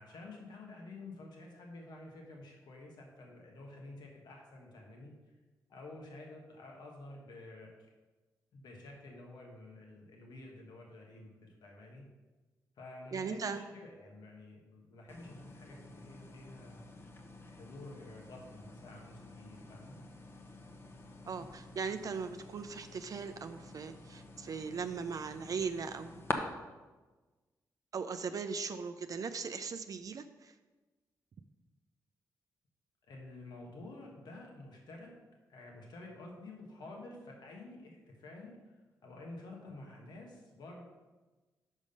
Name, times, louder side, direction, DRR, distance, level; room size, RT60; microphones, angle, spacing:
voice 1, 0.0-5.3 5.7-7.9 8.5-12.1 12.8-16.8 17.5-20.0 33.1-35.1 35.5-38.7 39.0-40.8, left 2 dB, 80° left, 0 dB, 1.4 m, -50 dB
voice 2, 13.1-13.6 21.3-26.1 27.9-30.6, right 5 dB, 55° right, 9 dB, 0.4 m, -39 dB
sound 1, 15.1-26.3, left 3 dB, 35° left, 0.9 m, -47 dB
6.2 x 5.3 x 5.4 m, 1.2 s
cardioid pair, 70°, 7 cm